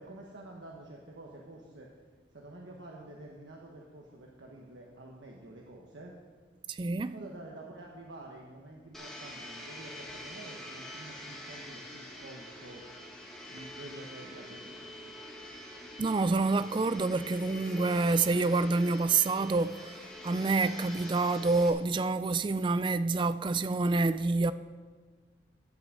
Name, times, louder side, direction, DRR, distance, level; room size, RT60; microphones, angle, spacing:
voice 1, 0.0-1.9 2.3-6.1 7.1-12.8 13.5-15.1, right 1 dB, 90° right, 1.3 m, -48 dB
voice 2, 6.7-7.2 16.0-24.5, right 3 dB, 25° right, 0.3 m, -27 dB
Domestic sounds home sounds, 8.9-21.7, left 1 dB, ahead, 1.5 m, -46 dB
11.5 x 6.2 x 7.8 m
head